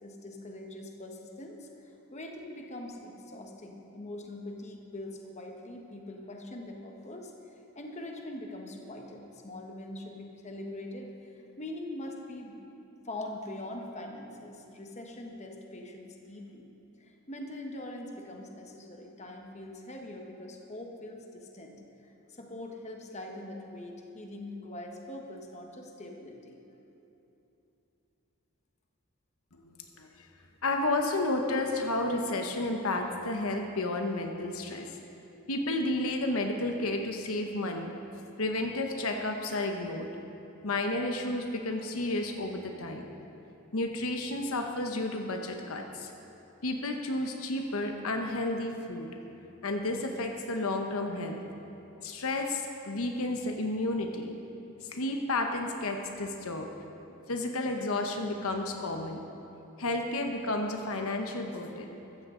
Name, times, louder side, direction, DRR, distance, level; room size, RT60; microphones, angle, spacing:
voice 1, 0.0-7.3 7.7-11.1 11.6-12.6 13.0-16.7 17.0-26.6, left 1 dB, 30° left, 2 dB, 1.2 m, -43 dB
voice 2, 29.5-30.3 30.6-34.9 35.5-37.9 38.4-40.1 40.6-43.0 43.7-46.1 46.6-49.1 49.6-51.4 52.0-54.3 54.8-56.7 57.3-59.3 59.8-62.0, left 2 dB, 75° left, 4 dB, 1.0 m, -32 dB
14.5 x 14.0 x 3.8 m, 2.9 s
head